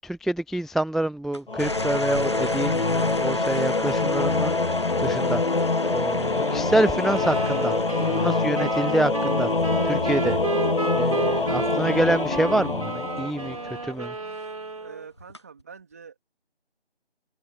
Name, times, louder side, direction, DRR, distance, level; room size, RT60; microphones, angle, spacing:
voice 1, 0.0-4.6 5.0-5.7 5.9-9.5 9.8-10.4 11.0-13.6 13.8-14.2, right 1 dB, ahead, 0.4 m, -27 dB
sound 1, 1.3-13.9 15.2-15.6, equal, 25° left, 1.0 m, -34 dB
Singing / Musical instrument, 1.5-13.9, left 3 dB, 55° left, 1.2 m, -25 dB
sound 2, 7.1-15.1, right 3 dB, 35° right, 4.1 m, -32 dB
voice 2, 14.7-16.2, right 6 dB, 15° right, 3.2 m, -45 dB
figure-of-eight pair, 175°, 32 cm